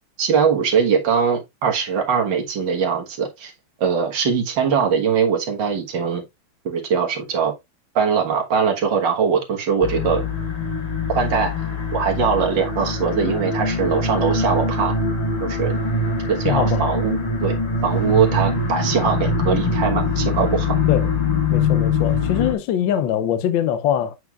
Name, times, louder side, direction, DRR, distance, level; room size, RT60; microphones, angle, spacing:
voice 1, 0.2-3.5 3.8-6.2 6.7-7.5 8.0-10.2 11.1-11.5 11.9-15.0 15.4-15.7 16.3-17.2 17.4-17.5 17.8-20.8, right 6 dB, 70° right, 2.0 m, -21 dB
sound 1, 9.8-22.5, left 3 dB, 25° left, 1.0 m, -23 dB
voice 2, 16.4-17.0 20.9-21.1 21.5-24.1, left 10 dB, 75° left, 1.4 m, -22 dB
7.8 x 6.0 x 2.3 m
omnidirectional pair, 2.1 m